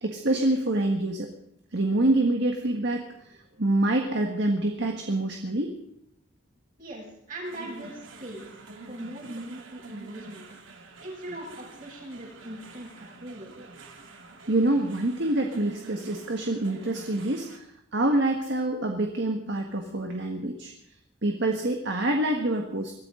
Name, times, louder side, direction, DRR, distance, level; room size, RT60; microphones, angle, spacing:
voice 1, 0.0-1.3 1.7-5.8 14.5-17.7 17.9-20.7 21.2-22.9, right 1 dB, 60° right, 3 dB, 1.6 m, -26 dB
voice 2, 6.8-8.5 8.8-10.5 11.0-13.5, right 1 dB, 45° right, -3 dB, 7.8 m, -40 dB
sound 1, 7.4-17.6, right 3 dB, 75° right, 2.4 m, -47 dB
23.0 x 14.0 x 3.8 m, 0.74 s
head